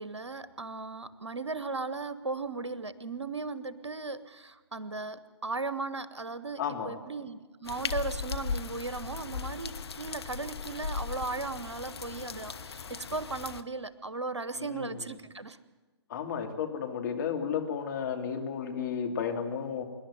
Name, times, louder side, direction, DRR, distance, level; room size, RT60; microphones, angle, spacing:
voice 1, 0.0-15.6, right 3 dB, 80° right, 14 dB, 1.1 m, -37 dB
voice 2, 6.6-6.9 14.6-15.0 16.1-19.8, left 7 dB, 45° left, 2 dB, 2.8 m, -33 dB
sound 1, 7.6-13.6, left 5 dB, 65° left, 1.0 m, -37 dB
25.5 x 11.5 x 9.2 m, 1.3 s
figure-of-eight pair, 125°, 14 cm